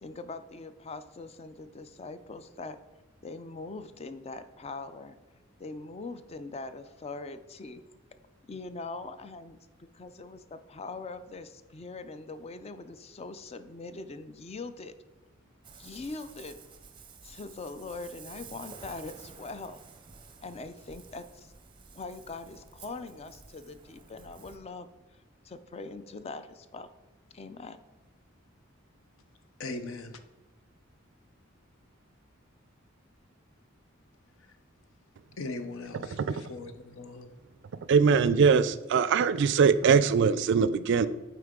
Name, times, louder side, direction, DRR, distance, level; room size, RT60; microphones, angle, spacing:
voice 1, 0.0-2.8 3.2-5.2 5.6-7.8 8.5-9.6 9.9-14.9 15.8-16.6 17.2-19.8 20.4-21.5 21.9-24.9 25.4-26.9 27.3-27.8, left 3 dB, 30° left, 0.4 m, -42 dB
Ocean, 15.6-24.6, right 5 dB, 25° right, 0.6 m, -51 dB
voice 2, 29.6-30.2 34.4-34.6 35.4-37.3, left 3 dB, 75° left, 0.7 m, -39 dB
voice 3, 37.9-41.1, right 6 dB, 60° right, 0.3 m, -22 dB
8.0 x 4.7 x 3.7 m
head